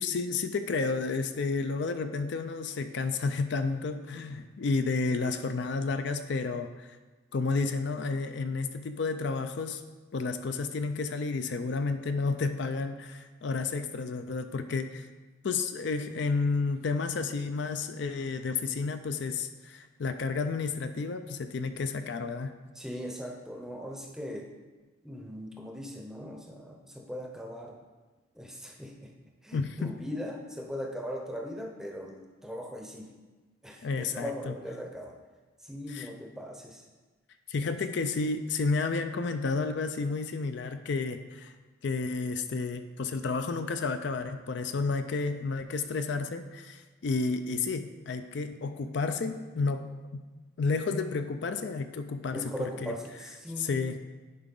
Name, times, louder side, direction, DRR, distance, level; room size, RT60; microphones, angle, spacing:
voice 1, 0.0-6.9 7.3-9.8 10.1-15.1 15.4-22.5 29.5-29.9 33.8-34.5 35.9-36.1 37.5-41.5 41.8-50.2 50.6-52.9 53.6-54.0, left 4 dB, 60° left, 9 dB, 0.4 m, -31 dB
voice 2, 22.7-24.5 25.0-27.8 28.3-29.1 29.4-33.1 33.6-35.2 35.6-36.9 37.6-37.8 52.3-53.8, equal, ahead, 1 dB, 0.7 m, -39 dB
10.5 x 4.9 x 3.7 m, 1.3 s
head